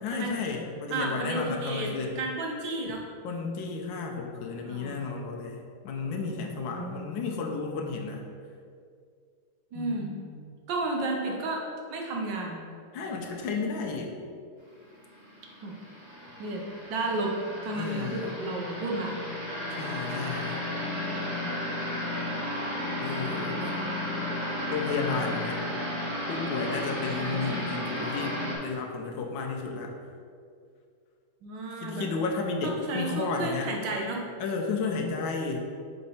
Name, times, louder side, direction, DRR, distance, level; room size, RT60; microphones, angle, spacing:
voice 1, 0.0-2.2 3.2-5.6 5.8-8.3 9.7-10.2 12.9-14.2 17.7-18.2 19.8-20.6 23.0-23.7 24.7-25.6 26.3-29.9 31.8-33.7 34.4-35.6, left 4 dB, 75° left, 1 dB, 1.4 m, -32 dB
voice 2, 0.9-1.9 2.2-3.0 4.6-5.0 6.3-7.0 9.7-10.1 10.7-11.6 11.9-12.6 15.6-15.8 16.4-16.6 16.9-17.3 17.6-19.2 21.2-21.5 23.6-23.7 27.2-27.7 31.4-32.1 32.6-34.3, right 2 dB, 65° right, 0 dB, 1.5 m, -32 dB
sound 1, 15.0-28.6, left 1 dB, 20° right, 0.7 m, -33 dB
5.3 x 4.7 x 4.2 m, 2.3 s
omnidirectional pair, 2.2 m